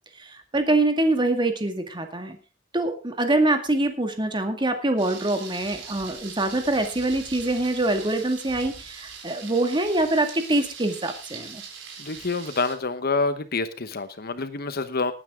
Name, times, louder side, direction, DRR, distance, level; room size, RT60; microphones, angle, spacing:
voice 1, 0.2-2.4 2.7-11.6, right 2 dB, 25° right, 6 dB, 2.1 m, -24 dB
Thunder, 5.0-12.7, right 6 dB, 85° right, 4.0 m, -41 dB
voice 2, 12.0-15.1, left 3 dB, 55° left, 11 dB, 1.1 m, -27 dB
19.0 x 9.4 x 3.8 m, 0.31 s
head